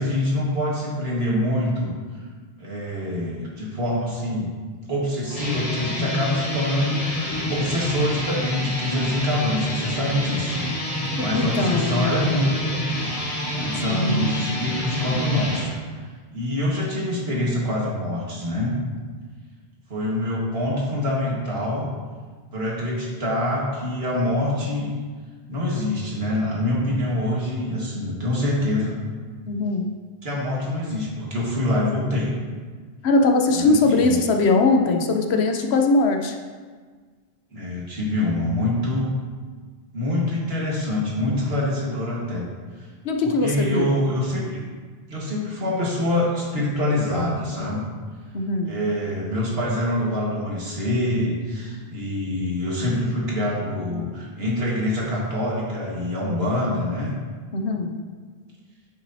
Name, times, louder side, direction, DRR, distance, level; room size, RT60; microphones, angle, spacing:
voice 1, 0.0-2.2 2.6-4.5 4.9-12.7 13.5-16.0 16.3-18.8 19.9-21.9 22.5-24.9 25.5-28.9 30.2-32.3 33.5-34.2 37.5-39.1 39.9-42.5 42.8-42.9 43.2-44.6 45.1-47.8 48.6-57.1, left 1 dB, 75° right, -4 dB, 1.9 m, -25 dB
sound 1, 5.3-15.7, left 1 dB, 35° left, 1.4 m, -27 dB
voice 2, 11.2-12.3 13.8-14.3 29.4-29.9 33.0-36.4 43.0-43.9 48.3-48.7 57.5-57.9, left 3 dB, 85° left, 4 dB, 1.0 m, -21 dB
9.4 x 6.1 x 2.8 m, 1.5 s
omnidirectional pair, 1.0 m